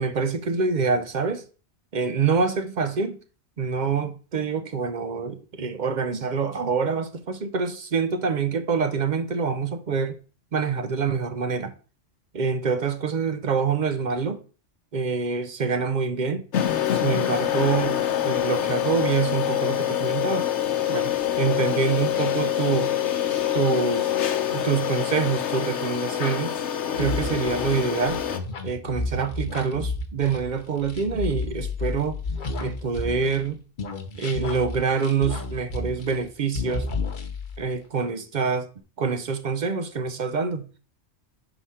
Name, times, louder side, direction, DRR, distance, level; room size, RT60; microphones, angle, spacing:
voice 1, 0.0-1.4 1.9-3.2 3.6-10.2 10.5-11.7 12.3-14.4 14.9-16.4 16.9-20.5 20.9-22.9 23.5-24.1 24.5-26.5 27.0-28.2 28.6-32.2 32.6-33.6 34.2-36.9 37.6-38.7 39.0-40.7, right 5 dB, 50° right, 0.6 m, -26 dB
sound 1, 16.5-28.4, left 11 dB, 80° left, 1.1 m, -25 dB
sound 2, 26.9-33.5 33.8-36.3 36.5-37.6, left 3 dB, 50° left, 1.0 m, -31 dB
4.9 x 4.6 x 5.6 m
omnidirectional pair, 1.2 m